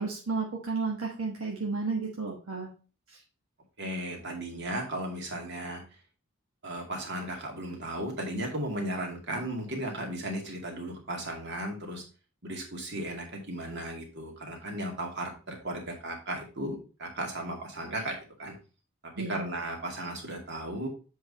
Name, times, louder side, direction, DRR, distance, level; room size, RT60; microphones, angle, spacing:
voice 1, 0.0-2.7 3.1-3.2 19.1-19.5, right 4 dB, 75° right, -1 dB, 1.3 m, -32 dB
voice 2, 3.8-5.8 6.6-12.0 12.4-18.5 19.0-20.9, right 1 dB, 55° right, 1 dB, 2.2 m, -35 dB
7.6 x 4.7 x 4.2 m, 0.36 s
head